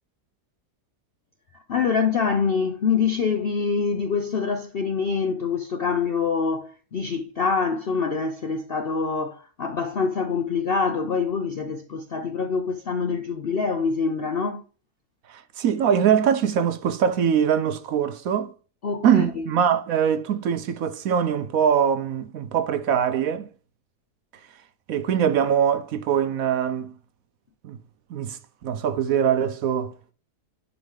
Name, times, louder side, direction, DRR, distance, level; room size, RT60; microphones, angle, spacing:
voice 1, 1.7-14.6 18.8-19.4, left 5 dB, 60° left, 0.6 m, -25 dB
voice 2, 15.3-18.5 19.0-23.5 24.9-26.9 27.6-27.8 28.1-29.9, right 8 dB, 65° right, 1.0 m, -22 dB
10.5 x 4.0 x 3.6 m
omnidirectional pair, 1.8 m